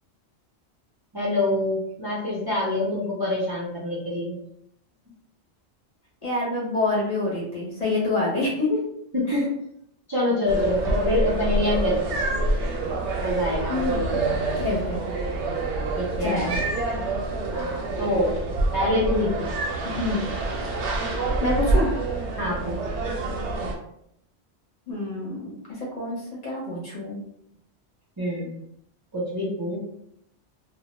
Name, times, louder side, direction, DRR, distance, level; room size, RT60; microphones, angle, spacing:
voice 1, 1.1-4.4 9.1-9.4 10.1-12.2 13.2-13.7 16.0-16.5 17.5-18.3 18.7-19.6 22.4-22.8 28.2-28.5 29.1-29.8, left 1 dB, 35° right, -7 dB, 0.4 m, -25 dB
voice 2, 6.2-8.8 9.3-9.4 13.7-14.3 14.6-15.0 16.2-16.7 19.8-20.3 21.4-21.9 24.9-27.2, left 2 dB, 40° left, -5 dB, 0.7 m, -27 dB
sound 1, 10.5-23.7, right 2 dB, 85° right, 0.9 m, -27 dB
2.0 x 2.0 x 2.9 m, 0.74 s
omnidirectional pair, 1.1 m